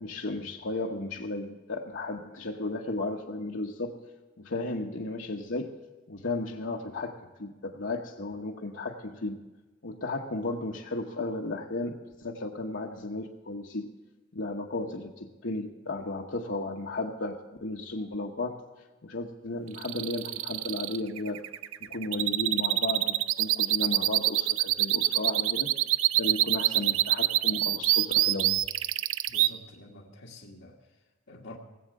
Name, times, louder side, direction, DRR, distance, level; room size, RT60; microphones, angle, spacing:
voice 1, 0.0-4.0 4.4-5.8 6.1-9.4 9.8-13.9 14.3-18.6 19.0-21.4 21.8-25.7 26.1-28.6, left 2 dB, 70° left, -1 dB, 1.0 m, -34 dB
sound 1, 19.7-29.5, right 15 dB, 85° right, 0.4 m, -25 dB
voice 2, 29.3-31.6, left 2 dB, 85° left, -4 dB, 1.5 m, -48 dB
19.0 x 8.0 x 6.4 m, 1.2 s
head